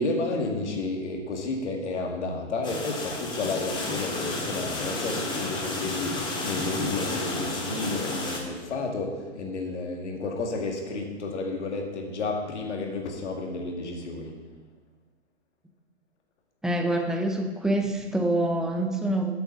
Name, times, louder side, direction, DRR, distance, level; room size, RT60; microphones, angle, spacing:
voice 1, 0.0-14.4, left 3 dB, 80° left, 1 dB, 2.2 m, -31 dB
sound 1, 2.6-8.4, left 2 dB, 15° left, 1.7 m, -32 dB
voice 2, 16.6-19.3, right 1 dB, ahead, 3 dB, 0.4 m, -26 dB
8.1 x 7.0 x 6.6 m, 1.4 s
hypercardioid pair, 135°, 34 cm